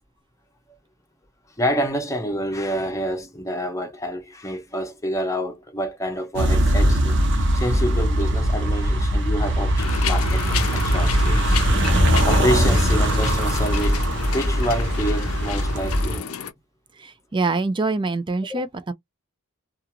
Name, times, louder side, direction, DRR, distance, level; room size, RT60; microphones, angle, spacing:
voice 1, 1.6-11.6 11.9-14.1 14.3-16.3 18.5-18.6, equal, 15° left, 0.8 m, -28 dB
sound 1, 6.3-16.2, equal, 60° right, 0.9 m, -20 dB
sound 2, 9.8-16.5, left 8 dB, 75° left, 0.5 m, -31 dB
voice 2, 17.0-18.9, right 3 dB, 20° right, 0.4 m, -25 dB
2.4 x 2.4 x 2.8 m
head